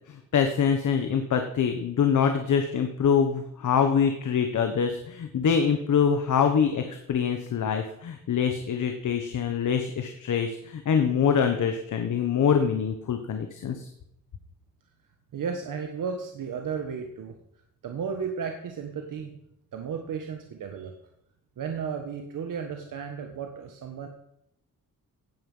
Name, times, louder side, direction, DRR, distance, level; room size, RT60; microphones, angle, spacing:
voice 1, 0.1-13.9, left 7 dB, 60° left, 6 dB, 1.4 m, -25 dB
voice 2, 15.3-17.3 17.8-19.4 19.7-20.9 21.6-24.1, right 6 dB, 65° right, 4 dB, 1.6 m, -34 dB
16.5 x 9.6 x 5.6 m, 0.79 s
wide cardioid pair, 170°, 34 cm